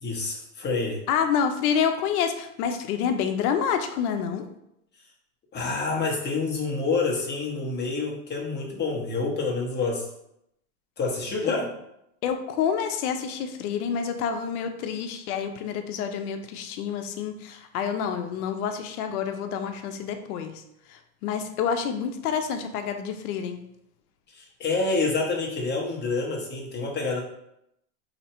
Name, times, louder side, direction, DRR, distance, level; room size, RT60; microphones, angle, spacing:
voice 1, 0.0-1.0 5.5-10.0 11.0-11.7 24.3-27.2, left 3 dB, 25° left, -2 dB, 1.0 m, -27 dB
voice 2, 1.1-4.4 11.4-11.5 12.2-20.6 20.9-23.6, left 7 dB, 80° left, 7 dB, 0.7 m, -28 dB
2.9 x 2.7 x 4.3 m, 0.79 s
supercardioid pair, 120°, 44 cm